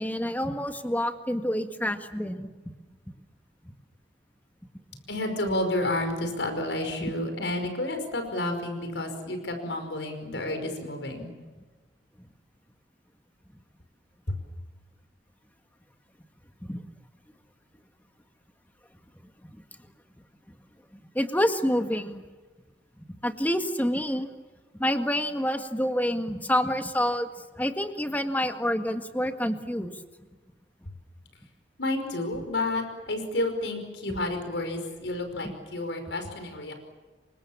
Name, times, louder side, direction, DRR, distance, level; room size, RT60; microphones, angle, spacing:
voice 1, 0.0-2.5 12.2-12.3 16.7-16.8 19.4-19.6 20.9-22.2 23.1-24.3 24.8-27.3 27.6-29.9, equal, 10° left, 7 dB, 1.8 m, -28 dB
voice 2, 5.1-11.3 14.3-14.4 31.8-36.7, left 1 dB, 85° left, 6 dB, 5.4 m, -30 dB
28.5 x 25.0 x 7.4 m, 1.3 s
head